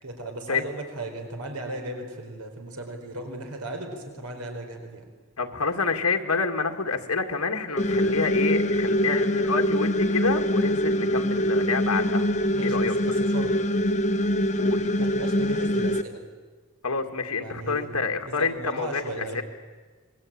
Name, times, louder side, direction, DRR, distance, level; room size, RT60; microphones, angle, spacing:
voice 1, 0.0-5.1 12.5-13.5 15.0-16.2 17.4-17.9 18.2-19.4, right 1 dB, 90° right, 4 dB, 4.6 m, -36 dB
voice 2, 5.4-12.3 12.6-12.9 14.6-14.9 16.8-19.4, left 4 dB, 75° left, 4 dB, 2.2 m, -28 dB
sound 1, 7.8-16.0, equal, 35° left, 1.0 m, -24 dB
26.5 x 22.0 x 8.8 m, 1.4 s
head